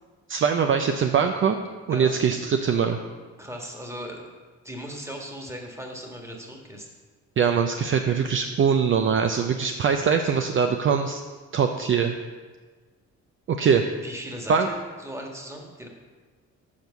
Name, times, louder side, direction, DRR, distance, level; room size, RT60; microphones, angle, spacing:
voice 1, 0.3-1.6 1.9-3.0 7.4-11.2 11.5-12.1 13.5-13.8 14.5-14.7, right 6 dB, 40° right, 6 dB, 0.5 m, -22 dB
voice 2, 3.4-4.3 4.6-6.9 14.0-15.9, equal, 10° right, 1 dB, 1.6 m, -38 dB
7.3 x 4.5 x 6.7 m, 1.4 s
cardioid pair, 90°, 30 cm